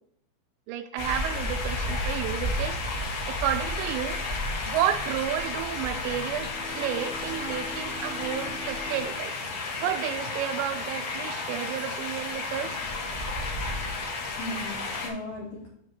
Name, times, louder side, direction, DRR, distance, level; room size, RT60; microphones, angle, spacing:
voice 1, 0.7-2.8 3.3-4.2 4.7-6.5 6.8-9.3 9.8-12.8, right 11 dB, 85° right, 8 dB, 2.7 m, -31 dB
sound 1, 1.0-15.1, left 2 dB, 90° left, 1.3 m, -32 dB
Bowed string instrument, 6.1-10.7, equal, 55° left, 2.4 m, -45 dB
voice 2, 12.4-14.0 14.3-15.7, left 1 dB, 70° left, -2 dB, 2.1 m, -40 dB
7.3 x 3.9 x 6.5 m, 0.70 s
omnidirectional pair, 5.3 m